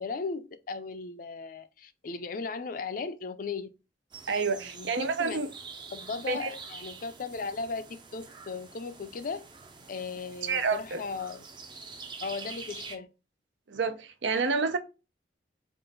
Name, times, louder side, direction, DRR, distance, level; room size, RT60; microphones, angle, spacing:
voice 1, 0.0-3.7 4.6-5.5 5.9-9.5 9.9-11.4 12.2-13.1, left 4 dB, 50° left, 0.4 m, -37 dB
sound 1, 4.1-13.0, right 4 dB, 25° right, 0.5 m, -46 dB
voice 2, 4.3-5.5 6.3-6.5 10.4-11.0 13.7-14.8, right 4 dB, 85° right, 0.6 m, -29 dB
3.7 x 2.5 x 3.8 m
head